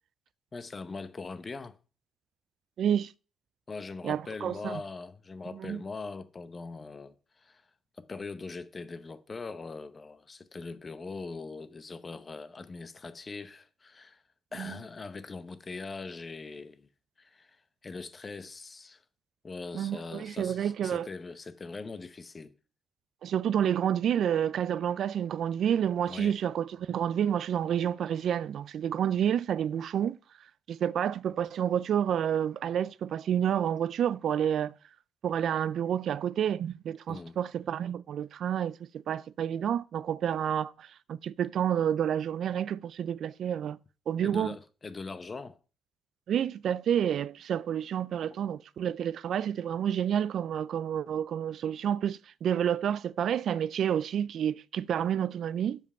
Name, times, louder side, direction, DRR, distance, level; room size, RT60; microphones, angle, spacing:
voice 1, 0.5-1.7 3.7-7.6 8.0-14.2 14.5-16.9 17.2-17.6 17.8-19.0 19.4-22.5 26.0-26.4 37.1-37.4 44.2-45.6, left 4 dB, 25° left, 0.8 m, -41 dB
voice 2, 2.8-3.1 4.0-4.8 5.5-5.8 14.6-14.8 19.7-21.1 23.2-30.2 30.7-34.7 35.2-43.8 44.1-44.6 46.3-55.8, right 9 dB, 60° right, 0.3 m, -29 dB
7.5 x 5.2 x 6.7 m
cardioid pair, 140°, 0 cm